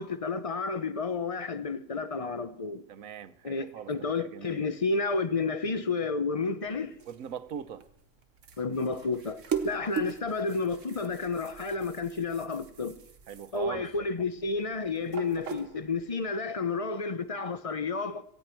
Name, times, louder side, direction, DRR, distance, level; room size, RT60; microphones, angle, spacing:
voice 1, 0.0-2.8 3.4-7.0 8.6-13.0 13.5-18.2, left 4 dB, 35° left, 0.7 m, -31 dB
voice 2, 2.9-3.9 4.2-4.6 7.1-7.8 13.3-13.9, right 8 dB, 90° right, 1.2 m, -40 dB
sound 1, 6.6-16.2, right 7 dB, 65° right, 1.5 m, -40 dB
18.0 x 15.5 x 4.5 m
omnidirectional pair, 1.4 m